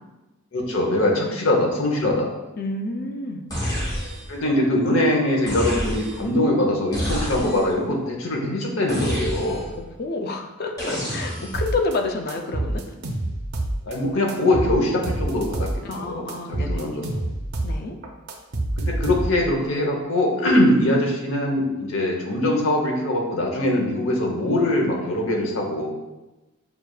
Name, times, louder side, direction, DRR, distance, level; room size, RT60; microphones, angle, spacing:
voice 1, 0.5-2.3 4.3-9.6 13.8-15.7 16.0-17.2 18.8-25.9, left 1 dB, 70° left, 0 dB, 0.8 m, -22 dB
voice 2, 2.6-3.4 9.7-12.8 15.8-16.9 17.6-18.0, left 3 dB, 45° left, 4 dB, 0.4 m, -29 dB
sound 1, 3.5-4.4 5.5-6.3 6.9-7.8 8.9-9.8 10.8-11.7, equal, 15° left, 0.9 m, -28 dB
sound 2, 11.5-12.0 12.3-14.0 14.3-16.0 16.3-17.8 18.0-19.5, right 1 dB, 55° right, 0.5 m, -27 dB
6.6 x 2.4 x 2.3 m, 1.0 s
head